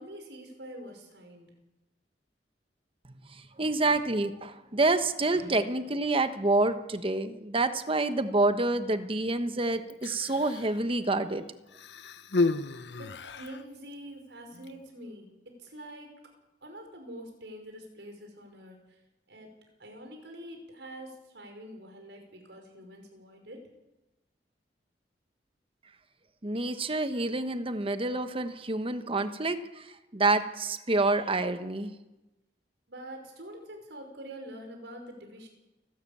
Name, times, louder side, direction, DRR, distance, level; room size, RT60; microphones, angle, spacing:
voice 1, 0.0-1.6 5.3-5.5 12.9-16.2 16.6-19.0 19.3-19.5 19.8-23.7 32.9-35.5, right 1 dB, 80° right, 3 dB, 5.4 m, -45 dB
voice 2, 3.3-11.4 26.4-31.9, right 2 dB, 30° right, 10 dB, 1.3 m, -28 dB
Human voice, 9.9-10.8 11.7-13.6 14.6-14.7, left 3 dB, 75° left, 0.9 m, -32 dB
29.5 x 13.0 x 8.7 m, 1.0 s
head